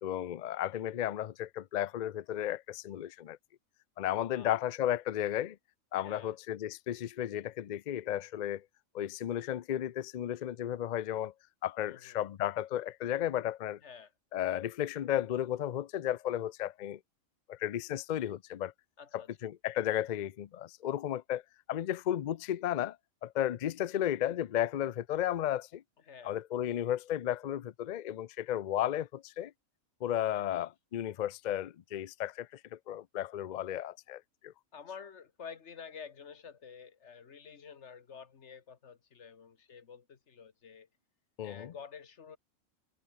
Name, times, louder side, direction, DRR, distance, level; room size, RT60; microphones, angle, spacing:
voice 1, 0.0-3.4 4.0-5.6 5.9-8.6 8.9-11.3 11.6-13.8 14.3-17.0 17.5-18.7 19.1-21.4 21.7-23.0 23.2-25.8 26.2-29.5 30.0-34.5 41.4-41.7, left 11 dB, 80° left, 0.4 m, -34 dB
voice 2, 6.0-6.3 11.9-12.2 13.8-14.1 19.0-19.3 26.1-26.4 30.3-30.5 34.7-40.9 41.4-42.4, left 6 dB, 55° left, 1.6 m, -49 dB
omnidirectional pair, 1.4 m